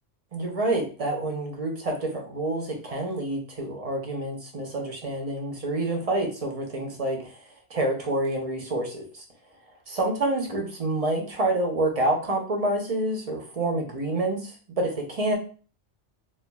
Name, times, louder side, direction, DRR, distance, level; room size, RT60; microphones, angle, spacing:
voice 1, 0.3-7.4 7.7-9.2 9.9-15.3, right 1 dB, 35° right, 1 dB, 0.6 m, -28 dB
4.3 x 2.3 x 2.2 m, 0.38 s
omnidirectional pair, 1.2 m